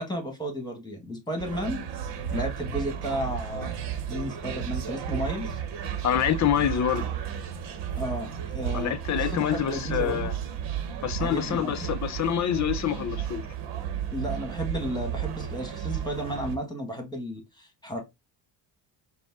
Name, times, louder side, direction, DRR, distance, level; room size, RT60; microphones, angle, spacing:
voice 1, 0.0-1.8 2.3-3.7 4.1-5.6 8.0-10.3 11.2-11.8 14.1-18.0, equal, 10° left, 1.4 m, -33 dB
sound 1, 1.4-16.6, right 9 dB, 70° right, 0.9 m, -33 dB
voice 2, 6.0-7.1 8.7-10.3 11.0-13.4, left 9 dB, 40° left, 0.7 m, -26 dB
5.2 x 2.1 x 3.5 m
cardioid pair, 120°, 43 cm